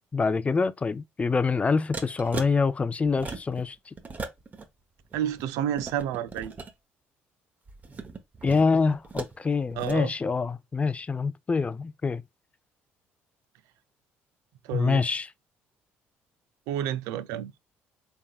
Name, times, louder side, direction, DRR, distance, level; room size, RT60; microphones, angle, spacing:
voice 1, 0.1-3.9 8.4-12.2 14.7-15.3, left 4 dB, 25° left, 0.4 m, -26 dB
sound 1, 1.9-2.5 3.1-3.6 4.0-4.7 5.0-6.7 7.7-9.4 9.7-10.0, right 4 dB, 35° right, 0.9 m, -38 dB
voice 2, 5.1-6.5 9.8-10.1 14.6-15.0 16.7-17.5, right 10 dB, 85° right, 0.4 m, -30 dB
3.7 x 3.6 x 2.3 m
supercardioid pair, 75°, 5 cm